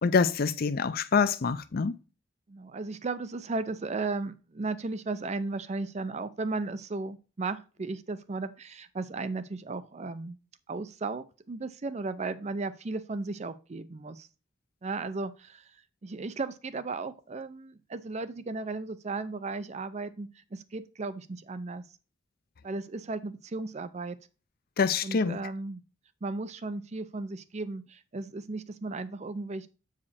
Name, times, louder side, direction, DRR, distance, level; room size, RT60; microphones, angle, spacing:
voice 1, 0.0-2.0 24.8-25.4, left 5 dB, 55° left, 0.5 m, -25 dB
voice 2, 2.5-10.4 10.7-14.3 14.8-21.8 22.6-24.2 25.0-25.8 26.2-29.7, right 3 dB, 35° right, 0.5 m, -35 dB
8.4 x 4.9 x 4.2 m
head